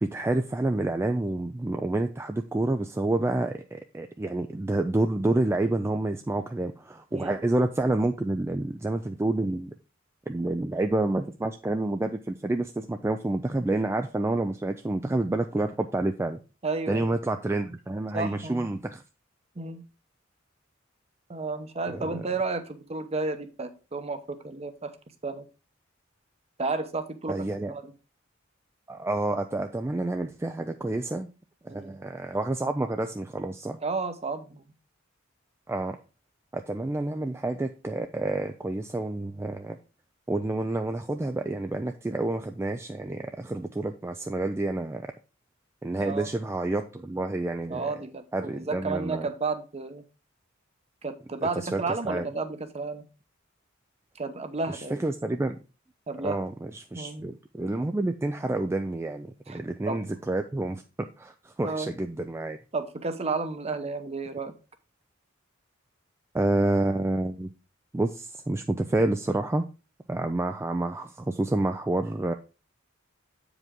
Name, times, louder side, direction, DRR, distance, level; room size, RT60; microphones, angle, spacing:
voice 1, 0.0-9.7 10.3-16.4 16.9-19.0 21.9-22.2 27.3-27.8 28.9-31.3 31.6-33.8 35.7-36.0 36.5-39.8 40.3-45.1 45.8-47.9 48.3-49.3 51.6-51.8 52.1-52.3 54.7-55.6 56.2-62.6 66.3-67.5 67.9-69.6 70.1-72.3, right 2 dB, 15° right, 0.3 m, -28 dB
voice 2, 16.6-17.1 18.1-18.7 19.6-19.8 21.3-24.9 25.2-25.4 26.6-27.4 27.7-27.9 31.7-32.0 33.8-34.6 46.0-46.3 47.7-50.0 51.0-53.0 54.1-55.0 56.1-56.4 56.9-57.3 59.5-59.6 59.9-60.0 61.6-61.9 62.7-64.5, right 3 dB, 30° right, 0.8 m, -32 dB
7.9 x 5.0 x 3.6 m
head